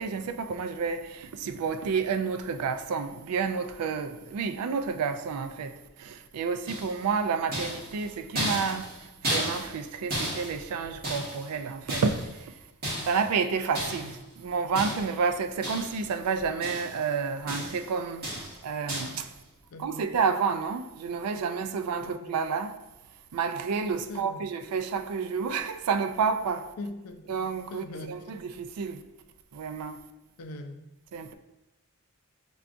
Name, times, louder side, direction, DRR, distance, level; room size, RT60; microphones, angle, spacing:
voice 1, 0.0-12.6 13.0-18.3 18.6-19.3 19.8-22.8 23.3-26.7 27.3-29.0 29.5-30.0 31.1-31.3, right 5 dB, 85° right, 0.3 m, -30 dB
sound 1, 6.7-7.1 7.5-9.8 10.1-11.5 11.9-12.4 12.8-13.3 13.7-14.2 14.8-15.2 15.6-16.1 16.4-17.1 17.5-17.9 18.2-18.6 18.9-19.2, right 1 dB, 45° right, 1.3 m, -33 dB
voice 2, 19.7-20.2 22.0-22.4 24.1-24.4 26.8-28.2 30.4-30.8, left 2 dB, 85° left, 0.5 m, -41 dB
6.8 x 2.3 x 2.5 m
head